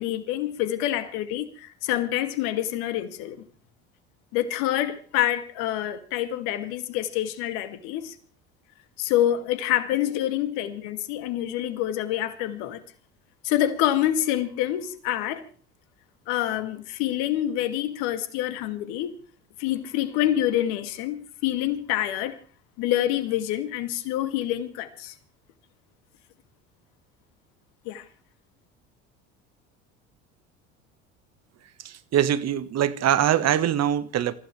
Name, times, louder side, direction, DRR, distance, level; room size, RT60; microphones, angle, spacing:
voice 1, 0.0-3.4 4.3-8.1 9.0-12.8 13.4-15.5 16.3-19.1 19.6-22.4 22.8-25.1 27.9-28.1, left 12 dB, 70° left, 2.5 m, -27 dB
voice 2, 31.8-34.3, right 10 dB, 45° right, 1.6 m, -23 dB
27.5 x 15.5 x 3.4 m
hypercardioid pair, 70°, 35 cm